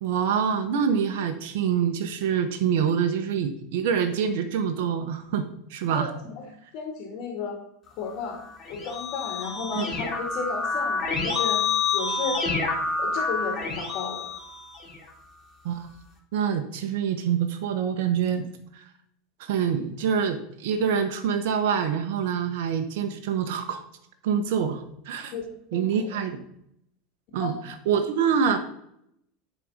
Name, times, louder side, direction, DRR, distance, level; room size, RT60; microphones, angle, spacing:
voice 1, 0.0-6.1 9.7-9.8 15.6-15.9 16.3-18.5 18.7-18.8 19.5-23.8 24.2-25.3 25.7-26.4 27.3-28.6, right 7 dB, 70° right, 7 dB, 0.9 m, -26 dB
voice 2, 5.9-6.4 6.7-7.6 8.0-8.4 8.7-11.6 11.9-12.4 13.0-14.3 25.3-25.4 25.7-25.8 26.1-26.2 27.4-27.6, left 5 dB, 60° left, 1 dB, 2.4 m, -33 dB
Keyboard (musical), 8.5-15.1, left 4 dB, 30° left, 2.4 m, -28 dB
9.8 x 4.1 x 5.0 m, 0.75 s
hypercardioid pair, 100°, 0 cm